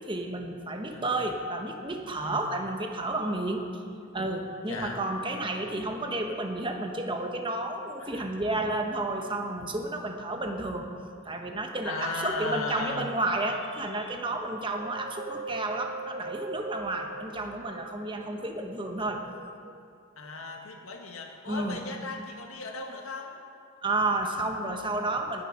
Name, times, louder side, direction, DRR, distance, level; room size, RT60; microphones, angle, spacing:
voice 1, 0.1-3.6 4.1-10.9 11.2-19.2 21.5-21.8 23.8-25.4, right 2 dB, 25° right, 4 dB, 1.1 m, -31 dB
voice 2, 4.7-5.0 8.0-8.2 11.8-13.1 20.2-23.4, left 3 dB, 80° left, 2 dB, 1.6 m, -36 dB
Wind, 14.7-18.3 18.8-20.1 20.6-20.7, right 3 dB, 40° right, 0.4 m, -41 dB
19.5 x 6.9 x 6.0 m, 2.4 s
head